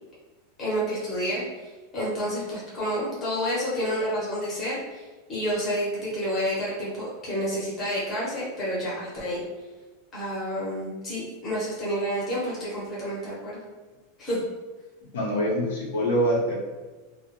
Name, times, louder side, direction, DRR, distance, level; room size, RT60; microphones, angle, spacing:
voice 1, 0.6-5.0 5.3-9.4 10.1-13.6 14.2-14.4, equal, 15° left, -8 dB, 0.7 m, -29 dB
voice 2, 15.1-16.5, equal, 80° left, -2 dB, 0.8 m, -24 dB
2.2 x 2.0 x 2.9 m, 1.3 s
supercardioid pair, 180°, 0 cm